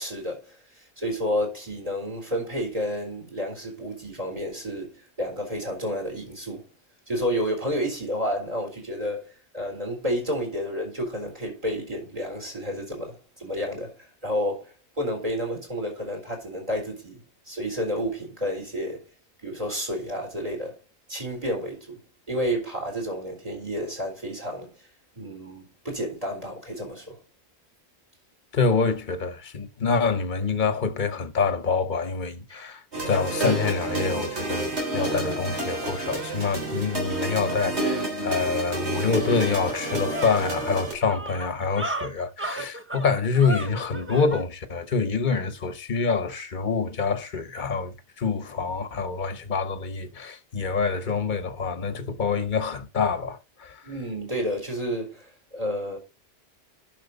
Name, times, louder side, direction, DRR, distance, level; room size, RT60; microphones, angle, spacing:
voice 1, 0.0-6.7 7.1-9.3 9.5-13.9 14.2-19.0 19.4-20.7 21.1-22.0 22.3-24.7 25.2-27.2 53.8-56.0, equal, 35° right, 4.0 m, -30 dB
voice 2, 28.5-53.8, left 5 dB, 45° left, 1.2 m, -26 dB
sound 1, 32.9-40.9, right 2 dB, 75° right, 3.7 m, -29 dB
sound 2, 39.0-39.1 39.5-44.5, right 1 dB, 10° right, 0.8 m, -34 dB
10.5 x 6.1 x 4.1 m
omnidirectional pair, 1.1 m